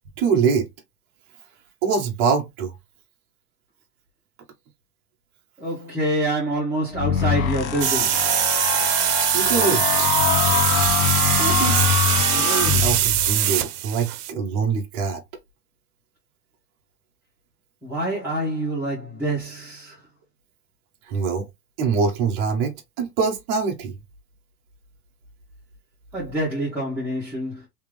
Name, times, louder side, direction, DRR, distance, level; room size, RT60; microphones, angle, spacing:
voice 1, 0.2-0.7 1.8-2.7 9.3-10.1 11.4-11.9 12.3-15.2 21.1-21.5 21.8-24.0, right 5 dB, 25° right, 0.7 m, -24 dB
voice 2, 5.6-8.3 17.8-20.0 26.1-27.7, right 1 dB, 5° right, 1.2 m, -26 dB
sound 1, 6.9-13.4, left 9 dB, 55° left, 0.9 m, -23 dB
sound 2, 7.8-14.3, right 12 dB, 70° right, 0.7 m, -22 dB
3.5 x 2.9 x 3.2 m
supercardioid pair, 160°, 49 cm